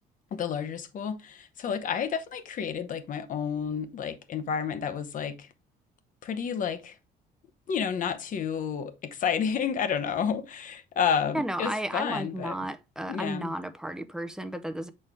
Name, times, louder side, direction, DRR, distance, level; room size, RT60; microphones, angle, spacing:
voice 1, 0.3-5.5 6.2-7.0 7.7-12.6 13.1-13.5, left 7 dB, 50° left, 0.9 m, -30 dB
voice 2, 11.3-14.9, right 1 dB, 5° right, 0.6 m, -33 dB
7.0 x 4.4 x 3.4 m
cardioid pair, 110°, 17 cm